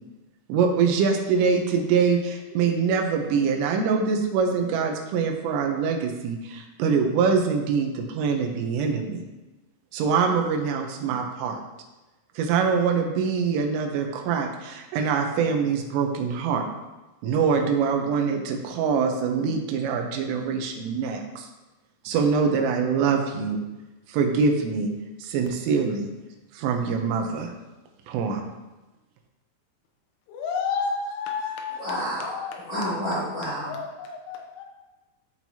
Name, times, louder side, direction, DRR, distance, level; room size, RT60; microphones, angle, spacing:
voice 1, 0.5-9.2 9.9-11.6 12.4-16.6 17.2-21.5 22.1-23.6 24.1-24.9 25.2-26.1 26.6-27.5 28.1-28.4, right 5 dB, 90° right, 3 dB, 3.5 m, -24 dB
voice 2, 30.3-32.6 33.7-34.7, left 5 dB, 90° left, 2 dB, 3.3 m, -31 dB
voice 3, 31.8-33.8, equal, 40° left, -12 dB, 2.5 m, -30 dB
13.5 x 4.5 x 2.8 m, 1.1 s
omnidirectional pair, 5.6 m